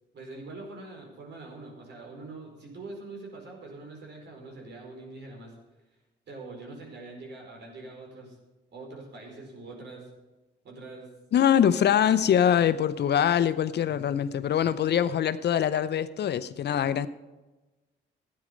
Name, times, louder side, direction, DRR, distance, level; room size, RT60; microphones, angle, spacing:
voice 1, 0.1-5.5 6.3-8.4 8.7-10.1 10.6-11.1 12.0-12.1 15.0-15.1, right 2 dB, 60° right, 1 dB, 4.7 m, -43 dB
voice 2, 11.3-17.1, left 9 dB, 60° left, 13 dB, 0.7 m, -23 dB
13.5 x 9.7 x 5.2 m, 1.1 s
cardioid pair, 90°, 20 cm